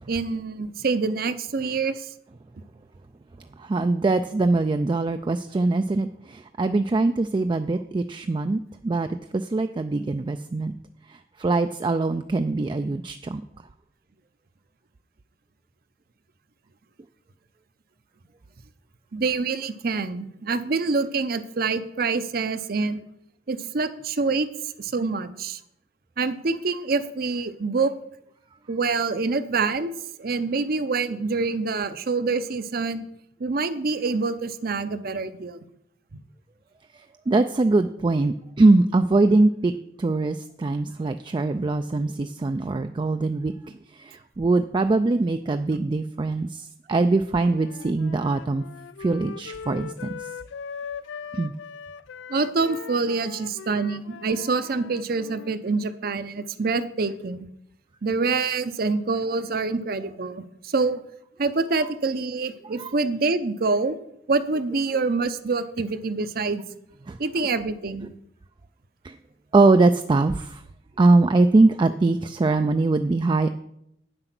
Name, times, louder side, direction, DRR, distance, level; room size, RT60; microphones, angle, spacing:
voice 1, 0.1-2.1 19.1-23.0 23.5-24.5 24.8-25.6 26.2-27.9 28.7-29.9 30.2-33.1 33.4-35.6 36.1-36.2 52.3-57.4 58.0-61.0 61.4-63.9 64.3-66.6 67.2-68.1, right 4 dB, 55° right, 12 dB, 0.6 m, -26 dB
voice 2, 3.6-10.8 11.1-13.4 36.9-39.7 40.0-43.5 43.9-48.6 49.0-50.3 51.3-51.5 62.8-62.9 67.1-67.2 68.0-68.1 69.0-69.2 69.5-70.6 71.0-73.5, right 3 dB, 25° right, 8 dB, 0.3 m, -22 dB
Wind instrument woodwind instrument, 47.4-55.6, left 6 dB, 85° left, 0.4 m, -40 dB
9.0 x 7.7 x 6.0 m, 0.76 s
head